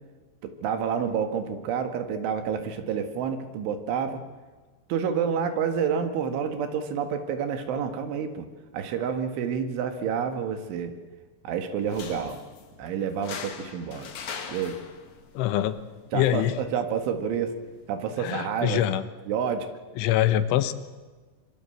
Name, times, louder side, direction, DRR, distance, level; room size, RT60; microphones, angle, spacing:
voice 1, 0.4-4.2 4.9-8.5 8.7-10.9 11.4-12.4 12.8-14.1 14.5-14.8 16.1-17.6 17.9-18.8 19.3-19.7, right 7 dB, 85° right, 7 dB, 4.3 m, -29 dB
sound 1, 11.8-18.8, left 6 dB, 50° left, 2.7 m, -43 dB
voice 2, 15.4-15.8 16.1-16.5 18.2-19.0 20.0-20.7, left 12 dB, 85° left, 12 dB, 3.5 m, -24 dB
24.5 x 24.0 x 7.9 m, 1.4 s
omnidirectional pair, 5.3 m